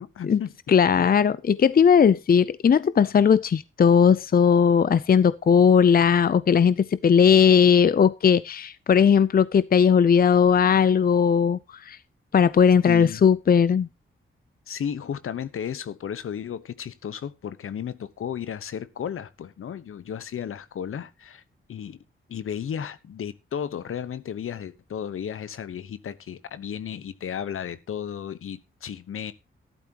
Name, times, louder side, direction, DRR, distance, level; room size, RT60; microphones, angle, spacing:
voice 1, 0.0-0.6 12.9-13.2 14.7-21.4 21.7-22.0 22.3-29.3, left 8 dB, 80° left, 1.1 m, -34 dB
voice 2, 0.7-11.6 11.9-12.0 12.3-13.9, left 7 dB, 45° left, 0.6 m, -18 dB
14.0 x 12.0 x 3.0 m
wide cardioid pair, 100°, 21 cm